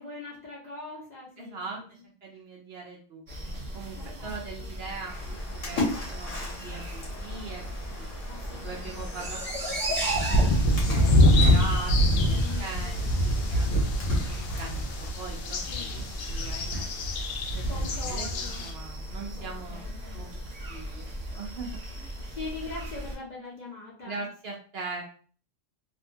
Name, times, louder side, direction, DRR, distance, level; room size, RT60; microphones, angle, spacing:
voice 1, 0.0-1.9 3.9-4.7 5.7-6.0 8.3-9.3 12.3-14.0 15.7-16.0 17.7-18.6 19.3-20.2 22.3-24.2, left 3 dB, 45° left, -5 dB, 0.7 m, -43 dB
voice 2, 1.4-3.2 3.7-8.1 8.4-10.4 10.9-16.9 17.5-19.8 20.1-20.3 20.7-21.7 22.0-22.4 24.1-25.0, right 4 dB, 65° right, 0 dB, 0.7 m, -41 dB
sound 1, 3.3-23.2, right 1 dB, 35° right, 0.8 m, -37 dB
Splash splatter, 5.1-15.1, left 2 dB, 65° left, 1.2 m, -38 dB
sound 2, 10.1-18.7, equal, 90° left, 1.0 m, -24 dB
2.6 x 2.1 x 2.7 m, 0.41 s
omnidirectional pair, 1.3 m